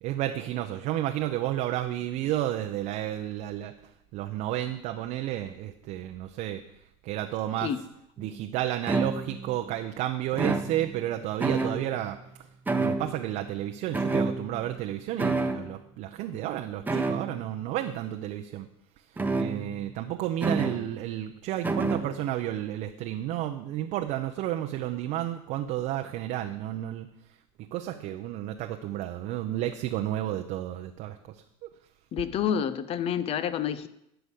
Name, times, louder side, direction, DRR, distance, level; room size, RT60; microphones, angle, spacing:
voice 1, 0.0-6.6 7.0-7.7 8.2-12.5 12.8-18.7 19.0-27.1 27.7-31.7, right 13 dB, 55° right, 5 dB, 0.8 m, -32 dB
sound 1, 8.2-8.3 8.9-9.6 10.3-11.1 11.4-12.1 12.7-13.4 13.9-14.8 15.2-15.7 16.9-17.4 19.2-19.9 20.4-20.9 21.6-22.2, right 3 dB, 10° right, 1.1 m, -29 dB
voice 2, 32.1-33.9, left 8 dB, 40° left, 14 dB, 0.9 m, -28 dB
12.5 x 5.1 x 8.3 m, 0.81 s
supercardioid pair, 105°, 15 cm